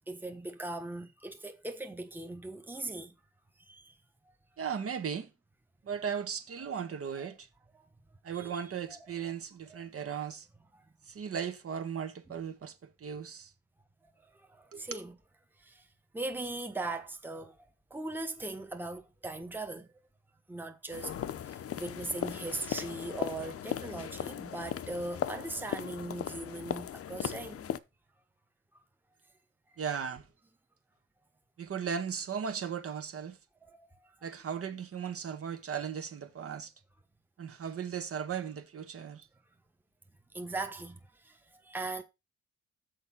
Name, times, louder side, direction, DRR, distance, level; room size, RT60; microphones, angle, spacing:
voice 1, 0.1-3.1 3.6-3.9 7.2-7.3 7.7-7.8 8.3-8.6 8.9-9.0 9.7-9.8 14.3-15.2 15.6-15.9 16.1-17.6 17.9-19.9 20.5-21.1 21.4-27.7 33.7-33.9 40.3-42.0, right 2 dB, 5° right, 1.2 m, -39 dB
voice 2, 4.6-5.3 5.8-7.5 8.2-10.5 11.1-13.5 14.7-15.0 29.8-30.3 31.6-33.4 34.2-36.7 37.4-39.3, right 7 dB, 50° right, 1.4 m, -37 dB
sound 1, 20.9-27.8, left 9 dB, 50° left, 0.7 m, -38 dB
6.6 x 5.0 x 5.9 m
cardioid pair, 90°, 30 cm